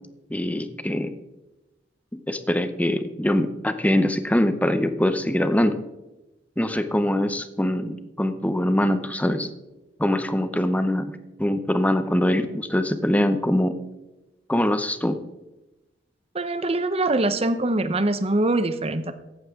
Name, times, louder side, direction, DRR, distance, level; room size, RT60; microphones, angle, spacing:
voice 1, 0.3-1.1 2.1-5.8 6.6-9.5 10.0-11.1 11.4-13.7 14.5-15.2, left 1 dB, 10° left, 10 dB, 0.7 m, -23 dB
voice 2, 16.3-19.1, right 2 dB, 35° right, 11 dB, 0.8 m, -23 dB
15.0 x 11.5 x 3.7 m, 1.0 s
head